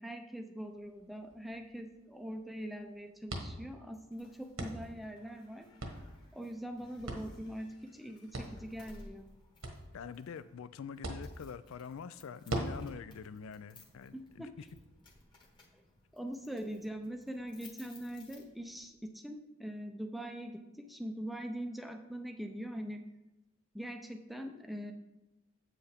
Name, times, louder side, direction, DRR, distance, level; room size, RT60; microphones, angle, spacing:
voice 1, 0.0-5.7 6.3-9.3 14.1-14.5 16.1-23.1 23.7-24.9, equal, ahead, 4 dB, 0.5 m, -42 dB
sound 1, 0.6-14.8, right 1 dB, 80° right, 1.4 m, -45 dB
sound 2, 3.9-18.9, left 2 dB, 20° left, 1.2 m, -60 dB
voice 2, 9.9-14.7, left 6 dB, 75° left, 14 dB, 0.3 m, -45 dB
8.1 x 7.7 x 3.5 m, 1.0 s
head